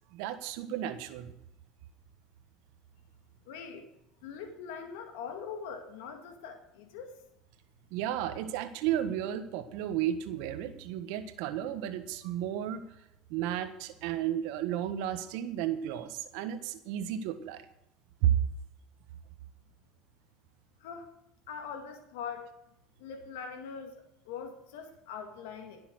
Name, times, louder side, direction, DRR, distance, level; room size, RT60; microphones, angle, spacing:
voice 1, 0.1-1.3 7.9-12.8 13.3-17.6 18.2-18.4, right 11 dB, 75° right, 10 dB, 1.4 m, -33 dB
voice 2, 3.5-3.9 4.2-7.2 20.8-21.1 21.5-22.5 23.0-25.8, left 6 dB, 85° left, 6 dB, 1.9 m, -42 dB
17.5 x 7.0 x 6.5 m, 0.80 s
supercardioid pair, 105°, 0 cm